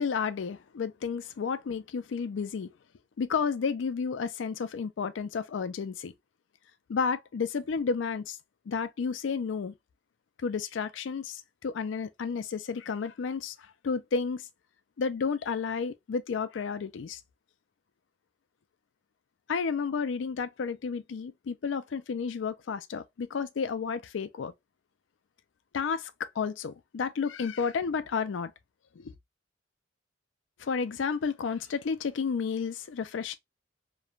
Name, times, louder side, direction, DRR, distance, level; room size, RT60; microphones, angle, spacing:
voice 1, 0.0-2.7 3.2-6.1 6.9-8.4 8.7-9.7 10.4-14.5 15.0-17.2 19.5-24.5 25.7-28.5 29.0-29.1 30.6-33.4, left 5 dB, 75° left, 0.4 m, -31 dB
3.1 x 2.2 x 2.4 m
head